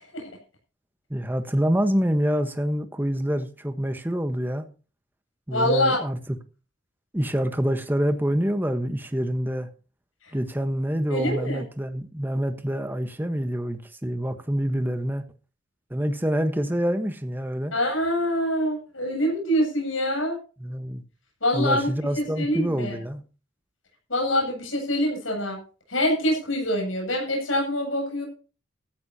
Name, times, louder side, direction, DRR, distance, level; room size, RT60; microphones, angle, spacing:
voice 1, 1.1-4.7 5.5-6.4 7.1-9.7 10.3-15.2 15.9-17.7 20.6-21.0 21.5-23.2, equal, 10° right, 1.2 m, -26 dB
voice 2, 5.5-6.0 10.2-10.3 11.1-11.6 17.7-20.4 21.4-21.9 22.2-23.0 24.1-25.6 25.9-28.2, equal, 90° left, 7.8 m, -25 dB
15.0 x 14.0 x 2.9 m
head